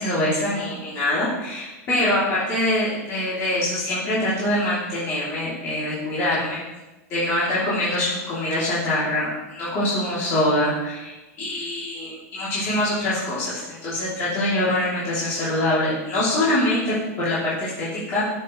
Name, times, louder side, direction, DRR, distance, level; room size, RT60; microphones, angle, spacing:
voice 1, 0.0-6.6 7.1-11.1 11.4-18.2, left 1 dB, 35° left, -10 dB, 3.0 m, -24 dB
10.0 x 7.1 x 3.2 m, 1.1 s
supercardioid pair, 150°, 8 cm